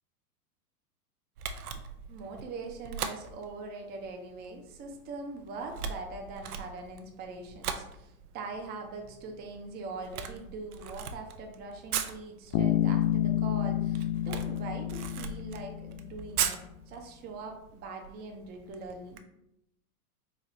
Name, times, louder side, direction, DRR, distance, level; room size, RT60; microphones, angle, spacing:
Camera, 1.4-19.2, right 7 dB, 75° right, 0.6 m, -40 dB
voice 1, 2.1-16.6 16.9-19.2, right 3 dB, 25° right, 3 dB, 0.5 m, -42 dB
Bass guitar, 12.5-16.3, left 11 dB, 60° left, 0.5 m, -29 dB
4.1 x 2.8 x 3.1 m, 0.80 s
hypercardioid pair, 100°, 45 cm